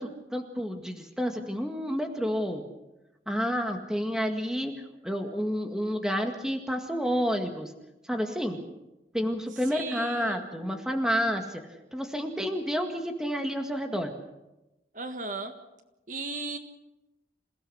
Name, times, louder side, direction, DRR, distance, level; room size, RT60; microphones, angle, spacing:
voice 1, 0.0-2.6 3.3-7.7 8.1-8.6 9.1-11.6 11.9-14.1, equal, 5° right, 4 dB, 1.9 m, -30 dB
voice 2, 9.7-10.4 14.9-15.5 16.1-16.6, right 3 dB, 45° right, 6 dB, 1.6 m, -36 dB
27.5 x 17.0 x 6.5 m, 0.97 s
head